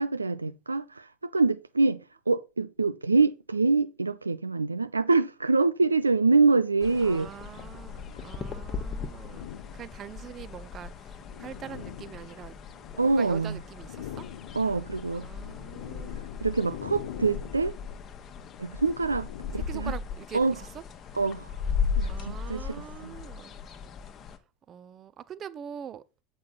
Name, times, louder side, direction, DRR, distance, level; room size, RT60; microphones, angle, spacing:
voice 1, 0.0-2.0 2.3-7.3 13.0-13.6 14.5-15.3 16.4-17.7 18.6-19.3 19.5-19.9 20.3-20.5 21.2-21.5 22.0-23.1, right 3 dB, 90° right, 0.3 m, -25 dB
sound 1, 5.9-6.1 7.1-8.6 9.1-10.3 10.9-13.3 13.6-20.2, left 10 dB, 70° left, 0.6 m, -45 dB
sound 2, 6.8-24.4, left 6 dB, 35° left, 1.0 m, -37 dB
voice 2, 7.0-12.6 13.0-14.3 15.1-16.3 19.5-21.2 22.1-23.6 24.7-26.0, right 8 dB, 35° right, 0.6 m, -43 dB
7.5 x 5.9 x 4.1 m
figure-of-eight pair, 75°, 0 cm